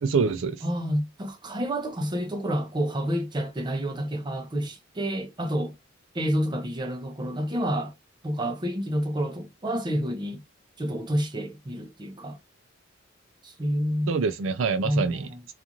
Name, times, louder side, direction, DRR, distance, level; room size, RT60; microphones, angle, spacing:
voice 1, 0.0-0.6 14.1-15.5, right 5 dB, 70° right, 0.4 m, -26 dB
voice 2, 0.6-5.7 6.1-7.9 8.2-10.4 10.8-12.4 13.4-14.1 14.8-15.4, equal, 20° right, 0.6 m, -29 dB
2.5 x 2.4 x 2.8 m
head